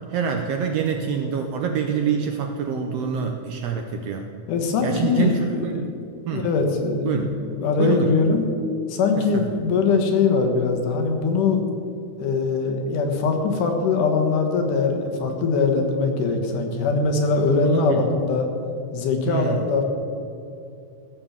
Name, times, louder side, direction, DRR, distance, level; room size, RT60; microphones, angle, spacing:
voice 1, 0.1-4.2 4.8-5.9 6.3-6.5 7.0-7.4 7.8-8.2 9.1-9.4 17.6-18.1 19.3-19.6, right 7 dB, 75° right, 4 dB, 1.5 m, -26 dB
voice 2, 4.5-5.7 6.3-8.4 8.9-11.6 12.2-18.5 18.9-19.8, left 4 dB, 85° left, 3 dB, 2.9 m, -22 dB
15.0 x 7.0 x 7.2 m, 2.6 s
omnidirectional pair, 3.5 m